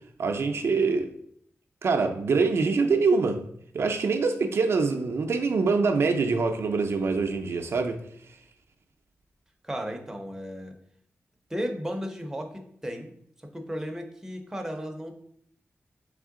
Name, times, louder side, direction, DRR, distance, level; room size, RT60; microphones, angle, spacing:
voice 1, 0.2-1.1 1.8-8.0, right 4 dB, 65° right, 0.4 m, -25 dB
voice 2, 9.6-10.8 11.5-13.1 13.5-15.1, equal, 10° right, 0.5 m, -34 dB
3.6 x 3.3 x 3.6 m
wide cardioid pair, 110°, 5 cm